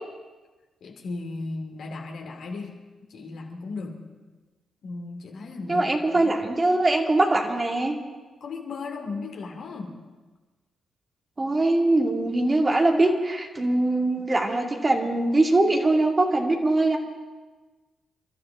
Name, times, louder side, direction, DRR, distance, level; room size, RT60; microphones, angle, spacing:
voice 1, 0.8-2.8 3.1-4.0 4.8-6.4 8.4-10.0, left 3 dB, 65° left, 1 dB, 2.6 m, -36 dB
voice 2, 5.7-8.0 11.4-17.0, right 2 dB, 30° right, 2 dB, 2.5 m, -22 dB
29.0 x 12.5 x 3.7 m, 1.3 s
hypercardioid pair, 45°, 0 cm